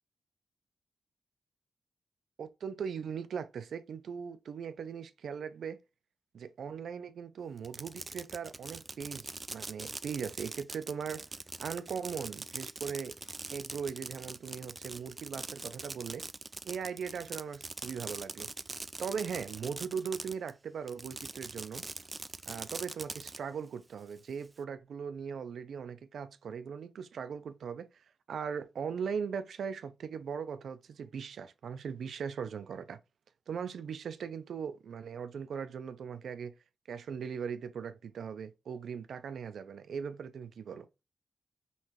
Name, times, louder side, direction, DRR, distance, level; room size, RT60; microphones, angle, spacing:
voice 1, 2.4-5.8 6.3-11.2 11.6-13.1 13.5-16.2 16.6-18.5 19.0-21.8 22.5-27.9 28.3-33.0 33.5-36.5 36.9-40.9, right 6 dB, 80° right, 0.6 m, -39 dB
Fireworks, 7.6-20.5 20.9-23.4, right 3 dB, 25° right, 0.4 m, -43 dB
5.5 x 3.2 x 2.9 m
wide cardioid pair, 125°, 0 cm